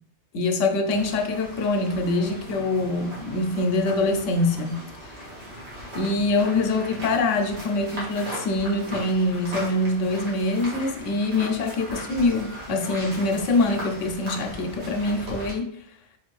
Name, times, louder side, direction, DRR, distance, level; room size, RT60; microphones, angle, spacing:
voice 1, 0.3-4.8 5.9-15.7, left 2 dB, 90° left, 5 dB, 0.9 m, -24 dB
sound 1, 0.8-15.5, equal, 60° right, 1.5 m, -38 dB
4.4 x 2.5 x 3.1 m, 0.70 s
omnidirectional pair, 1.2 m